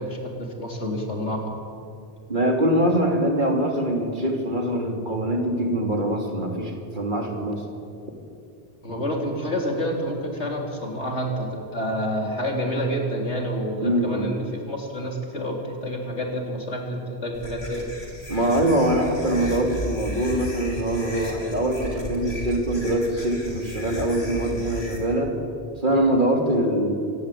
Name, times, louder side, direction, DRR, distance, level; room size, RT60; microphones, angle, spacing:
voice 1, 0.0-1.5 8.8-17.9, equal, 90° left, 1 dB, 4.1 m, -28 dB
voice 2, 2.3-7.6 13.8-14.4 18.3-25.3 25.8-26.9, right 1 dB, 45° right, 2 dB, 3.5 m, -23 dB
sound 1, 17.3-25.0, left 1 dB, 65° left, 4.6 m, -35 dB
25.5 x 19.5 x 8.7 m, 2.5 s
omnidirectional pair, 1.1 m